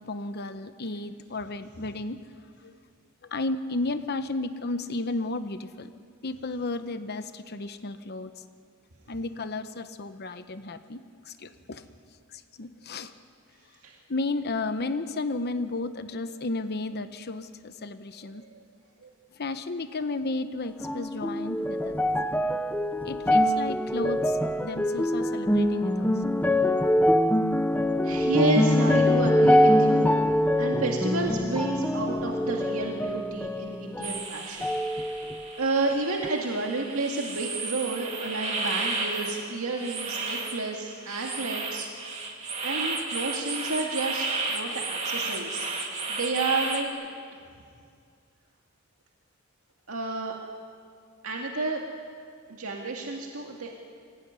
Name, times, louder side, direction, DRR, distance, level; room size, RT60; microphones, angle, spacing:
voice 1, 0.0-2.2 2.6-2.7 3.2-5.9 6.2-8.4 9.1-11.8 12.3-13.1 14.1-18.4 19.3-22.1 23.0-26.2, left 2 dB, 50° left, 9 dB, 0.9 m, -33 dB
sound 1, 20.8-34.3 34.6-35.6 36.2-36.3, left 1 dB, 10° left, 0.7 m, -24 dB
voice 2, 28.0-30.2 30.6-35.2 35.6-41.9 42.6-45.7 46.1-46.9 49.9-50.3 51.2-51.8 52.5-53.8, right 3 dB, 80° right, 0 dB, 2.1 m, -30 dB
sound 2, 34.0-46.9, right 3 dB, 35° right, 2.5 m, -33 dB
24.5 x 16.5 x 9.5 m, 2.2 s
head